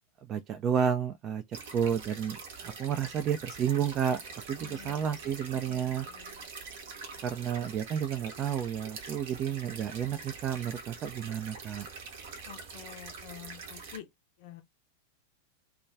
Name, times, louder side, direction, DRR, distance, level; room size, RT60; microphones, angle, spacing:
voice 1, 0.3-1.4 1.7-4.2 4.5-6.1 7.2-11.9, right 8 dB, 30° right, 0.3 m, -31 dB
sound 1, 1.5-14.0, right 4 dB, 55° right, 0.7 m, -45 dB
voice 2, 4.6-5.0 5.2-5.3 5.7-6.5 12.5-14.1 14.4-14.6, left 11 dB, 45° left, 0.5 m, -48 dB
2.3 x 2.2 x 3.2 m
figure-of-eight pair, 90°, 0 cm